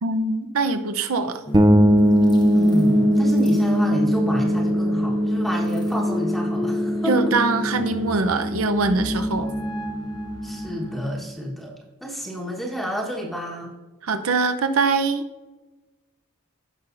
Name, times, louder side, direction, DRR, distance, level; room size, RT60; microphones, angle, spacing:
voice 1, 0.0-1.4 7.1-9.5 14.0-15.3, right 3 dB, 75° right, 8 dB, 0.7 m, -23 dB
sound 1, 1.5-11.1, equal, 20° left, 0.9 m, -31 dB
sound 2, 1.5-11.1, equal, 20° right, 0.5 m, -22 dB
voice 2, 2.5-7.2 10.4-11.7 12.0-13.7, equal, ahead, -2 dB, 1.2 m, -29 dB
15.5 x 5.7 x 2.6 m, 1.2 s
head